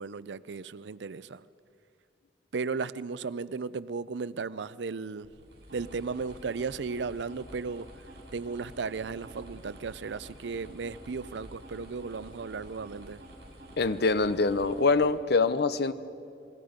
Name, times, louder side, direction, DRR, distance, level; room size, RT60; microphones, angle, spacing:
voice 1, 0.0-1.4 2.5-5.3 5.7-8.0 8.3-13.2, right 4 dB, 90° right, 17 dB, 0.5 m, -35 dB
sound 1, 5.2-6.3 7.2-8.1 9.0-10.1 10.8-11.9, right 2 dB, 15° left, 6.1 m, -56 dB
sound 2, 5.3-15.2, right 1 dB, 70° right, 6.3 m, -49 dB
voice 2, 13.8-15.9, left 3 dB, 65° left, 13 dB, 0.8 m, -24 dB
28.0 x 20.5 x 5.1 m, 2.5 s
head